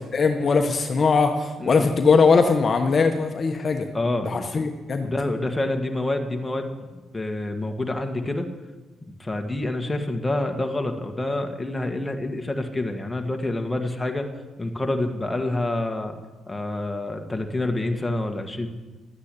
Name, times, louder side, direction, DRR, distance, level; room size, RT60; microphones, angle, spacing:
voice 1, 0.1-3.9 4.2-5.1, left 4 dB, 40° left, 5 dB, 1.1 m, -20 dB
voice 2, 3.9-4.7 5.0-6.9 7.1-8.5 9.2-14.3 14.6-16.1 16.5-18.7, left 2 dB, 15° left, 4 dB, 1.7 m, -27 dB
12.5 x 9.6 x 8.4 m, 1.2 s
cardioid pair, 90°, 0 cm